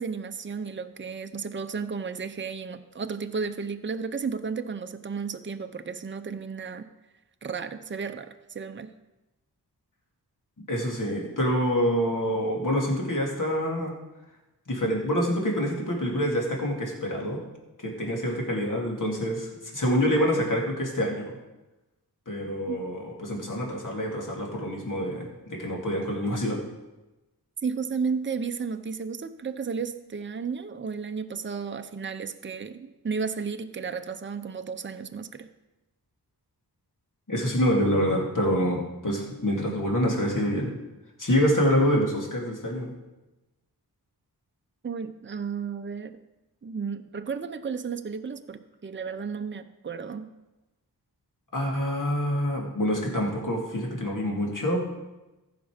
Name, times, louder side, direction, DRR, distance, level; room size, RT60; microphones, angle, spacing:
voice 1, 0.0-6.9 7.4-8.9 22.7-22.8 27.6-35.5 44.8-46.2 46.6-50.3, right 5 dB, 30° right, 9 dB, 0.6 m, -33 dB
voice 2, 10.7-13.9 14.7-17.4 17.8-21.4 22.3-26.6 37.3-40.7 41.2-42.9 51.5-55.0, equal, 50° left, -1 dB, 2.7 m, -26 dB
14.5 x 6.0 x 5.1 m, 1.0 s
wide cardioid pair, 60°, 40 cm